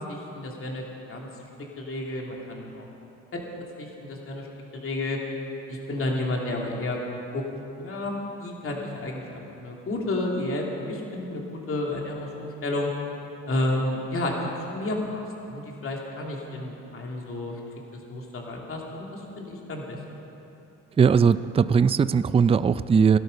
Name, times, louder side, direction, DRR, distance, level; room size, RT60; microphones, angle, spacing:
voice 1, 0.1-0.8 1.1-1.3 1.8-2.8 3.3-3.4 3.8-4.5 4.7-5.2 5.7-7.0 7.3-7.4 7.7-12.9 13.5-17.5 18.1-20.0, left 1 dB, 45° left, -1 dB, 2.9 m, -31 dB
voice 2, 21.0-23.2, right 6 dB, 20° right, 15 dB, 0.4 m, -19 dB
17.5 x 12.5 x 5.5 m, 3.0 s
cardioid pair, 90°, 30 cm